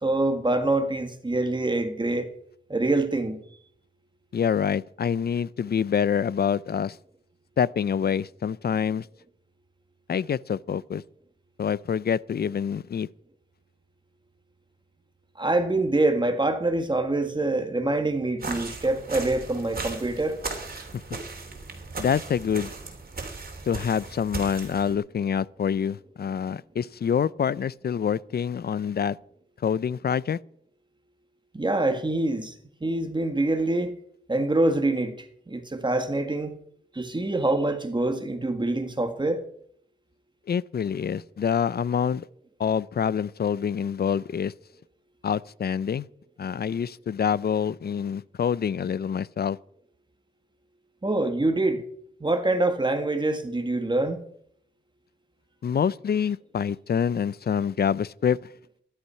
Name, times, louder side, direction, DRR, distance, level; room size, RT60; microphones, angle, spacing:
voice 1, 0.0-2.3 2.7-3.4 15.3-20.4 31.5-32.5 32.8-33.9 34.3-35.2 35.5-36.5 36.9-39.4 51.0-51.8 52.2-54.2, right 2 dB, 25° right, 1.7 m, -25 dB
voice 2, 4.3-7.0 7.6-9.1 10.1-11.0 11.6-13.1 20.9-21.0 22.0-22.7 23.7-29.2 29.6-30.4 40.5-42.2 42.6-44.5 45.2-46.1 46.4-49.6 55.6-58.4, left 7 dB, 55° left, 0.5 m, -26 dB
sound 1, 18.4-24.9, right 3 dB, 50° right, 3.1 m, -37 dB
13.5 x 11.5 x 5.7 m
wide cardioid pair, 115°, 20 cm